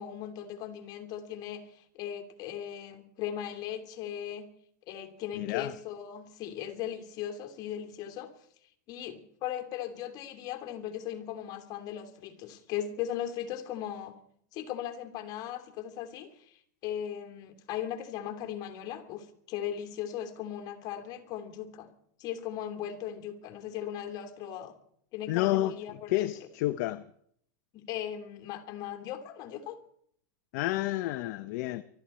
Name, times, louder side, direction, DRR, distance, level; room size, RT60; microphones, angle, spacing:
voice 1, 0.0-4.4 4.9-8.3 8.9-14.1 14.5-21.9 22.2-24.7 25.1-26.3 27.7-29.8, left 10 dB, 40° left, 2.7 m, -38 dB
voice 2, 5.4-5.7 25.3-25.7 26.1-27.0 30.5-31.8, left 16 dB, 55° left, 0.7 m, -29 dB
24.0 x 13.0 x 4.3 m
hypercardioid pair, 130°, 10 cm